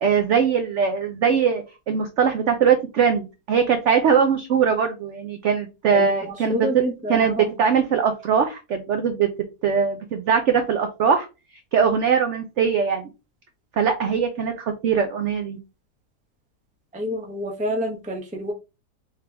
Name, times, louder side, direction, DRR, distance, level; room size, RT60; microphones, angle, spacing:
voice 1, 0.0-6.8 7.1-9.3 9.6-11.3 11.7-13.1 13.8-15.6, right 6 dB, 75° right, 7 dB, 0.6 m, -21 dB
voice 2, 5.9-7.4 16.9-18.5, equal, 10° right, 3 dB, 0.4 m, -28 dB
3.7 x 3.3 x 3.2 m, 0.28 s
omnidirectional pair, 1.8 m